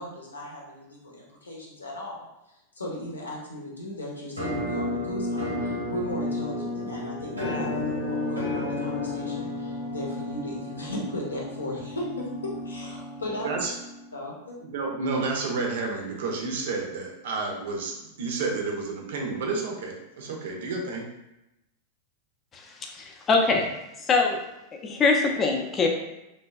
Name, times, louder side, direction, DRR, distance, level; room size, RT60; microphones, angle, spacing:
voice 1, 0.0-13.6 14.1-14.6, left 1 dB, 75° left, -3 dB, 0.7 m, -36 dB
Musical instrument, 4.4-14.2, left 1 dB, 85° right, 0.8 m, -32 dB
voice 2, 14.6-21.1, right 3 dB, 55° right, 0 dB, 0.5 m, -30 dB
voice 3, 22.9-23.7 24.0-24.4 24.8-25.9, left 4 dB, 25° left, 2 dB, 0.4 m, -23 dB
3.2 x 2.2 x 2.3 m, 0.91 s
figure-of-eight pair, 90°, 0 cm